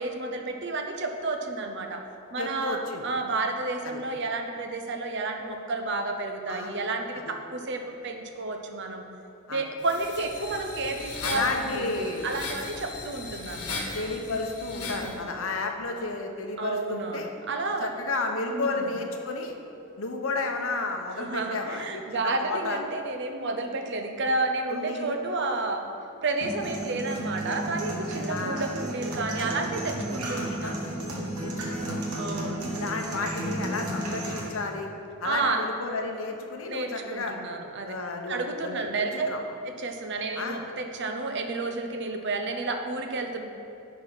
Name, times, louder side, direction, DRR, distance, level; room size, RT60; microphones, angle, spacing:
voice 1, 0.0-2.0 2.3-9.0 9.5-14.1 14.8-15.2 16.6-17.9 18.5-18.9 21.2-25.8 26.2-30.8 31.4-31.6 32.2-32.7 35.2-35.6 36.7-37.9 38.3-39.3 39.8-43.4, right 3 dB, 50° right, 5 dB, 0.7 m, -31 dB
voice 2, 2.4-3.0 3.8-4.0 6.5-6.9 7.1-7.2 9.5-9.6 11.2-12.3 13.9-17.3 17.8-19.5 20.0-22.8 24.7-25.2 28.3-28.7 30.4-30.7 31.4-32.2 32.8-34.9 35.2-37.4 37.9-39.4 40.3-40.6, left 3 dB, 65° left, 3 dB, 0.9 m, -32 dB
sound 1, 9.8-15.1, left 3 dB, 85° left, 1.4 m, -37 dB
sound 2, 26.4-34.4, right 1 dB, 85° right, 1.5 m, -33 dB
10.5 x 4.2 x 6.0 m, 2.9 s
head